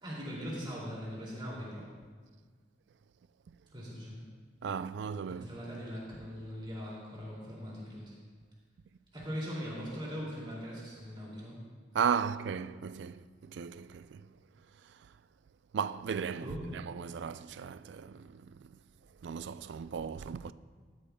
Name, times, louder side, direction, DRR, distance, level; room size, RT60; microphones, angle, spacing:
voice 1, 0.0-1.9 3.7-4.2 5.3-8.1 9.1-11.6 16.4-16.7, equal, 30° right, 2.6 m, -40 dB
voice 2, 4.6-5.5 11.9-14.3 14.8-15.1 15.7-18.8 19.2-20.5, right 7 dB, 70° right, 0.3 m, -36 dB
13.5 x 12.0 x 2.3 m
head